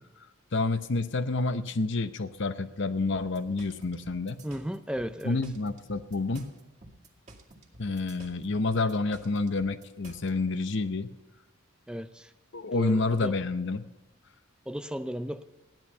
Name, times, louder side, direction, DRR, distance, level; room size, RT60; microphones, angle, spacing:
voice 1, 0.5-4.4 5.2-6.5 7.8-11.1 12.5-13.8, left 3 dB, 60° left, 11 dB, 0.8 m, -29 dB
sound 1, 3.1-10.3, right 2 dB, 35° right, 2.2 m, -52 dB
voice 2, 4.4-5.4 11.9-12.3 12.7-13.3 14.7-15.5, equal, 5° right, 11 dB, 0.4 m, -35 dB
15.5 x 11.0 x 5.5 m, 1.1 s
head